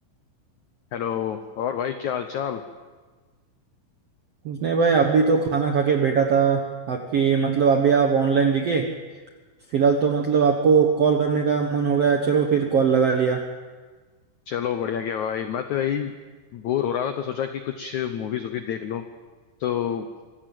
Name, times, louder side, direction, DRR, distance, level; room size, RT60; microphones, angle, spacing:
voice 1, 0.9-2.6 14.5-16.2 16.5-19.0 19.6-20.1, left 9 dB, 85° left, 8 dB, 1.6 m, -28 dB
voice 2, 4.4-8.9 9.7-13.4, right 6 dB, 70° right, 3 dB, 1.5 m, -20 dB
25.5 x 15.5 x 7.7 m, 1.4 s
omnidirectional pair, 4.8 m